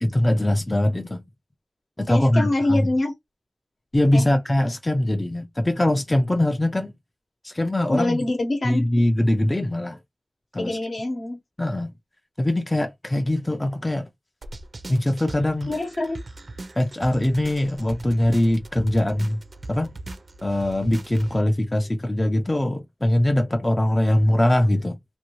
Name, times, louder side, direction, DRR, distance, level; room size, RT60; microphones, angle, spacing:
voice 1, 0.0-1.2 2.0-2.9 3.9-6.9 7.4-8.2 8.6-10.0 10.5-10.8 11.6-11.9 12.4-14.1 14.9-15.7 16.8-19.4 19.7-19.9 20.4-25.0, left 1 dB, 20° left, 0.4 m, -22 dB
voice 2, 2.1-3.1 4.1-4.3 7.9-8.9 10.6-11.4 15.7-16.2, left 2 dB, 60° left, 0.9 m, -25 dB
sound 1, 14.4-21.4, right 2 dB, 50° right, 0.5 m, -40 dB
2.6 x 2.6 x 2.9 m
wide cardioid pair, 90°, 0 cm